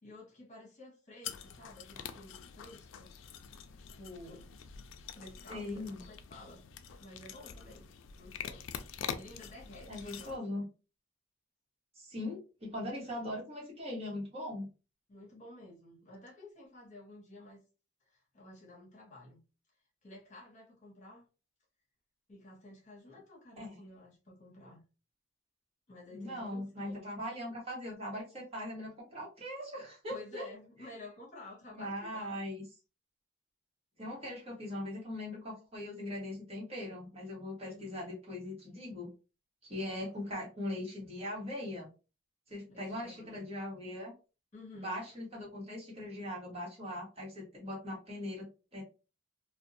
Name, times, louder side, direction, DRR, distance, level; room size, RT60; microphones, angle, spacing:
voice 1, 0.0-3.1 3.5-4.5 5.1-6.7 7.0-7.9 8.1-8.7 9.1-10.6 15.1-17.6 18.1-19.4 20.0-21.2 22.3-24.8 25.9-27.1 27.5-27.6 30.1-32.4 37.6-38.0 40.0-40.4 42.7-43.5 44.5-45.0, left 2 dB, 40° left, 1.0 m, -52 dB
sound 1, 1.2-10.4, left 8 dB, 80° left, 0.3 m, -45 dB
voice 2, 5.5-6.0 9.9-10.6 12.0-14.7 23.6-23.8 26.1-30.4 31.7-32.6 34.0-39.1 39.6-41.9 42.5-44.1 44.7-48.8, left 1 dB, 30° right, 1.1 m, -40 dB
2.5 x 2.2 x 2.6 m
head